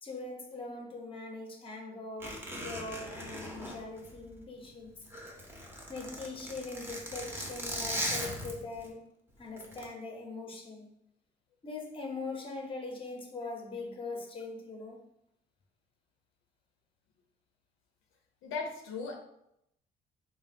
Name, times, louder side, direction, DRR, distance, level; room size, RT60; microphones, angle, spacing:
voice 1, 0.0-4.9 5.9-9.1 9.4-10.9 11.6-15.0, left 3 dB, 25° left, 1 dB, 0.7 m, -41 dB
Zipper (clothing), 2.2-4.6 4.9-8.9 9.6-9.8, equal, 10° right, 0.7 m, -39 dB
voice 2, 18.4-19.2, left 4 dB, 90° left, 2 dB, 0.5 m, -37 dB
3.2 x 2.3 x 2.5 m, 0.78 s
cardioid pair, 90°, 20 cm